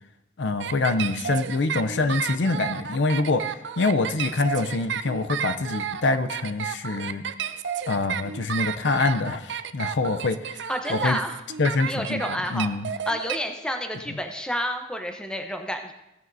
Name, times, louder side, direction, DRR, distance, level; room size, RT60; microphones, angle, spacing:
voice 1, 0.4-3.4 3.8-7.2 7.9-10.6 10.9-11.2 11.6-12.9, left 3 dB, 60° left, 9 dB, 0.5 m, -25 dB
sound 1, 0.6-13.4, right 8 dB, 60° right, 0.4 m, -31 dB
voice 2, 10.7-11.4 11.9-12.7 13.1-15.9, equal, 5° left, 5 dB, 0.7 m, -30 dB
17.0 x 9.3 x 2.6 m, 0.91 s
head